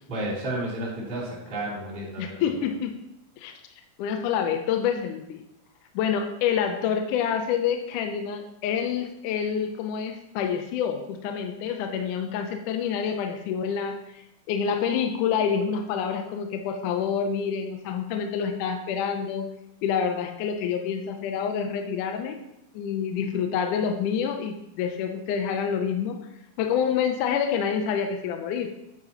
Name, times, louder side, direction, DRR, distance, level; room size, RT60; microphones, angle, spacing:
voice 1, 0.1-2.6, right 1 dB, 15° right, -8 dB, 2.7 m, -32 dB
voice 2, 2.2-2.9 3.4-3.5 4.0-5.4 6.0-19.5 19.8-22.4 22.7-26.2 26.6-28.7, left 7 dB, 80° left, 5 dB, 1.9 m, -27 dB
9.1 x 8.8 x 2.9 m, 0.84 s
omnidirectional pair, 4.2 m